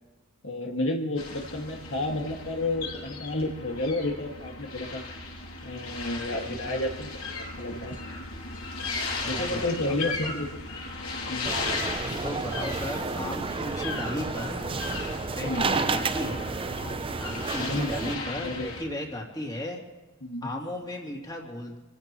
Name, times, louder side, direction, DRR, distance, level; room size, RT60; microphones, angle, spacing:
voice 1, 0.4-5.0 5.6-8.0 9.3-10.5 11.3-11.5 15.4-15.7 17.6-18.7 20.2-20.5, left 2 dB, 65° left, 0 dB, 2.0 m, -31 dB
sound 1, 1.2-18.8, left 3 dB, 80° left, 6.7 m, -36 dB
voice 2, 6.4-6.8 9.2-9.6 9.9-10.0 10.2-10.3 12.0-14.6 15.3-16.4 17.2-19.8 20.4-21.8, left 1 dB, 20° left, -1 dB, 2.8 m, -35 dB
sound 2, 11.4-18.2, right 4 dB, 25° right, 0.5 m, -31 dB
27.5 x 16.0 x 3.1 m, 1.1 s
head